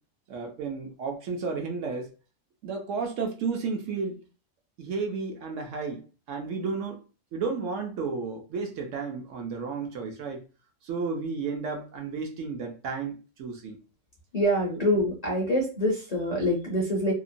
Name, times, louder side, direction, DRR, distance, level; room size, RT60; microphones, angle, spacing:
voice 1, 0.3-2.1 2.6-4.2 4.8-6.0 6.3-7.0 7.3-10.4 10.8-13.8, right 4 dB, 70° right, 3 dB, 0.9 m, -32 dB
voice 2, 14.3-17.1, equal, 45° left, -5 dB, 0.5 m, -25 dB
2.8 x 2.1 x 2.5 m, 0.34 s
omnidirectional pair, 1.5 m